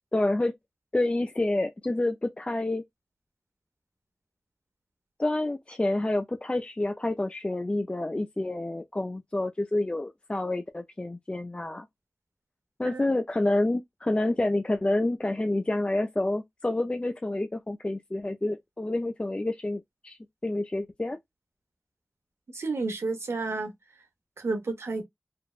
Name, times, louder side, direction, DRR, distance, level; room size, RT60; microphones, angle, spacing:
voice 1, 0.1-0.5 0.9-2.8 5.2-11.9 12.8-21.2, left 2 dB, 25° left, 0.3 m, -28 dB
voice 2, 22.5-23.7 24.4-25.0, right 3 dB, 90° right, 0.7 m, -31 dB
3.3 x 2.1 x 2.3 m
wide cardioid pair, 60°, 4 cm